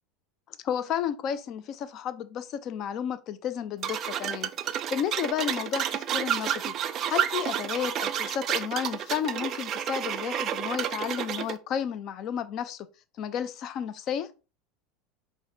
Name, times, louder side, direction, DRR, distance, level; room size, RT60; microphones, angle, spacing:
voice 1, 0.6-4.5 4.9-6.7 7.1-12.9 13.2-14.3, left 9 dB, 45° left, 0.4 m, -32 dB
sound 1, 3.8-11.6, right 9 dB, 40° right, 0.3 m, -30 dB
5.5 x 2.1 x 2.7 m
figure-of-eight pair, 75°, 0 cm